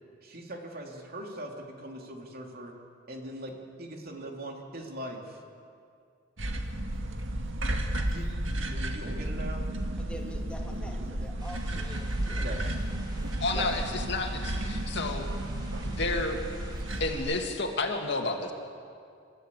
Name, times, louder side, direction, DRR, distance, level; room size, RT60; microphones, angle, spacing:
voice 1, 0.2-2.7 3.1-5.4 8.1-8.3 8.6-9.7 12.4-12.8 13.5-13.7, right 1 dB, 50° right, 1 dB, 3.0 m, -40 dB
sound 1, 6.4-17.2, right 1 dB, 75° right, 1.9 m, -33 dB
voice 2, 10.0-12.6 13.5-13.7, equal, 5° left, 0 dB, 2.5 m, -44 dB
sound 2, 11.4-17.5, right 1 dB, 20° right, 3.1 m, -51 dB
voice 3, 13.4-15.3 15.8-16.4 17.0-18.5, left 2 dB, 60° left, 3 dB, 2.4 m, -31 dB
28.5 x 14.5 x 8.4 m, 2.4 s
head